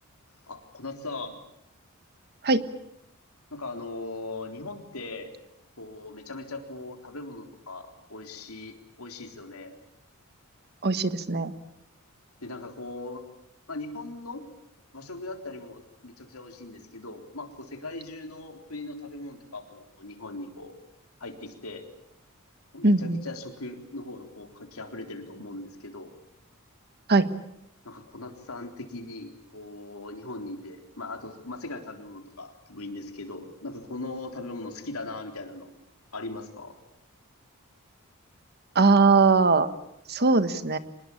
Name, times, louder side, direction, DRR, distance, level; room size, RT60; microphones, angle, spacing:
voice 1, 0.5-1.4 3.5-5.3 5.8-9.8 12.4-13.2 13.7-14.5 14.9-20.7 21.2-21.8 22.7-26.1 27.8-35.7 36.1-36.8, left 2 dB, 80° left, 5 dB, 3.8 m, -39 dB
voice 2, 10.8-11.5 22.8-23.2 27.1-27.3 38.7-39.7 40.1-40.8, right 3 dB, 50° right, 12 dB, 1.4 m, -20 dB
25.5 x 21.0 x 8.6 m, 0.79 s
head